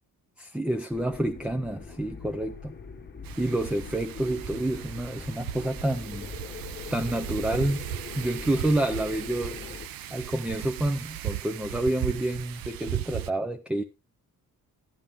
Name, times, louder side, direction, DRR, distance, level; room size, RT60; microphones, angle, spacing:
voice 1, 0.4-2.8 3.4-6.3 6.9-7.8 8.1-9.6 10.1-13.8, right 1 dB, 5° right, 0.6 m, -28 dB
sound 1, 0.9-9.9, left 5 dB, 30° left, 1.3 m, -42 dB
Wind, 3.2-13.3, right 13 dB, 75° right, 0.6 m, -37 dB
12.5 x 8.9 x 3.5 m
cardioid pair, 130°, 35 cm